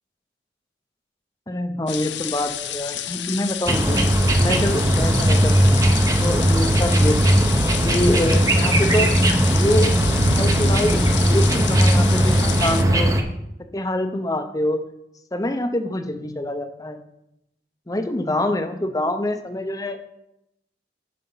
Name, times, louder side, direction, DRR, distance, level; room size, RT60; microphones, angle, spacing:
voice 1, 1.5-4.0 4.3-5.8 6.2-7.4 7.8-9.1 9.5-9.9 10.3-13.1 13.7-14.9 15.3-17.0 17.9-20.0, left 1 dB, 20° left, 8 dB, 0.7 m, -25 dB
sound 1, 1.9-12.8, left 11 dB, 80° left, 0.7 m, -30 dB
sound 2, 3.7-13.2, right 1 dB, 20° right, 0.7 m, -18 dB
9.4 x 5.6 x 5.6 m, 0.84 s
head